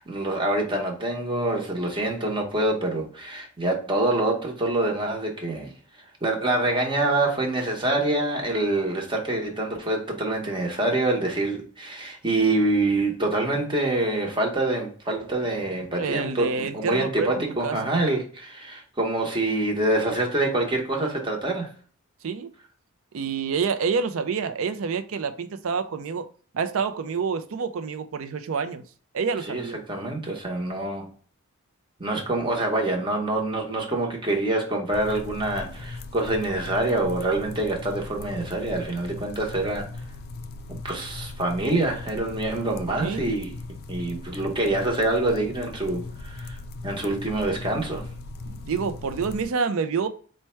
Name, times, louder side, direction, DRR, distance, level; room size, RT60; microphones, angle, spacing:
voice 1, 0.0-5.7 6.2-21.7 29.5-31.1 32.0-39.9 40.7-43.5 43.9-46.6 46.8-48.1, right 2 dB, 20° right, 0.9 m, -26 dB
voice 2, 16.0-17.3 17.6-17.9 22.2-22.5 23.1-26.3 26.5-28.8 29.1-29.8 43.0-43.3 48.5-50.1, right 5 dB, 65° right, 0.4 m, -28 dB
sound 1, 34.9-49.5, left 3 dB, 45° left, 0.3 m, -38 dB
4.5 x 2.2 x 4.3 m
head